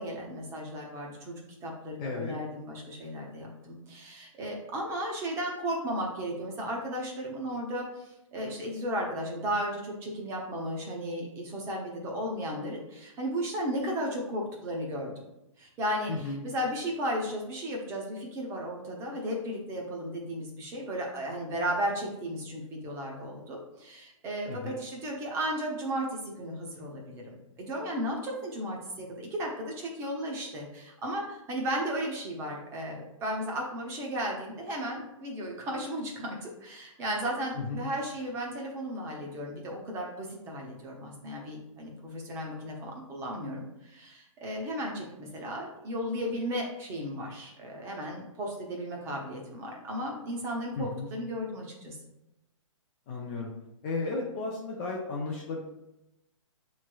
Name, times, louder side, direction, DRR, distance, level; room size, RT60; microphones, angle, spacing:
voice 1, 0.0-1.3 1.6-15.1 15.6-52.0, equal, 15° right, -1 dB, 0.7 m, -35 dB
voice 2, 2.0-2.4 16.1-16.4 24.5-24.7 37.6-37.8 50.8-51.1 53.1-53.5 53.8-55.7, left 3 dB, 20° left, -2 dB, 0.4 m, -34 dB
7.1 x 3.1 x 2.2 m, 0.88 s
hypercardioid pair, 155°, 17 cm